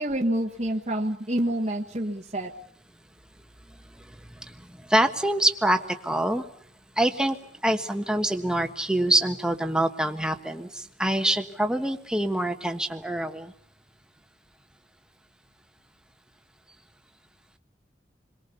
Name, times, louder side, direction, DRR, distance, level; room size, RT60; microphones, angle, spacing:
voice 1, 0.0-2.5, right 1 dB, 35° right, -1 dB, 1.4 m, -27 dB
voice 2, 4.9-6.4 7.0-7.4 7.6-10.7 11.0-13.5, right 1 dB, 5° right, 6 dB, 1.4 m, -25 dB
28.5 x 22.5 x 7.0 m, 0.62 s
head